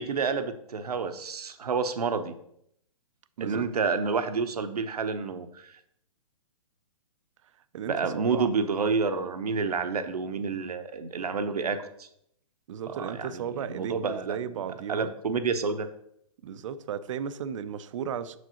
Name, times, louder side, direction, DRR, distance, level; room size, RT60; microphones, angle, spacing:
voice 1, 0.0-2.4 3.4-5.7 7.9-12.1 12.9-14.4 14.9-15.9, right 5 dB, 80° right, 0.8 m, -29 dB
voice 2, 3.4-3.7 7.7-8.5 12.7-15.1 16.4-18.4, right 8 dB, 55° right, 0.5 m, -35 dB
6.6 x 6.2 x 2.9 m
hypercardioid pair, 135°, 19 cm